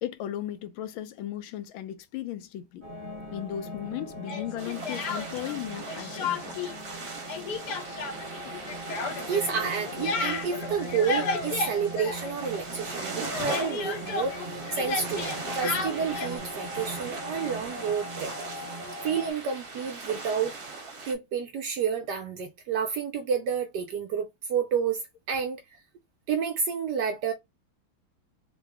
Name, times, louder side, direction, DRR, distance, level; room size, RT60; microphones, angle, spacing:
voice 1, 0.0-2.8 3.3-6.6, left 12 dB, 80° left, 1.4 m, -36 dB
sound 1, 2.8-19.3, equal, 20° right, 1.0 m, -40 dB
Speech, 4.3-5.6 5.9-6.7 7.0-12.7 13.0-16.4, left 4 dB, 65° left, 1.2 m, -33 dB
sound 2, 4.6-21.1, right 3 dB, 55° right, 1.3 m, -40 dB
voice 2, 9.3-14.4 14.7-18.3 19.0-20.5 21.0-25.0 25.3-25.6 26.3-27.3, right 6 dB, 75° right, 1.0 m, -30 dB
3.8 x 2.0 x 3.4 m
omnidirectional pair, 2.2 m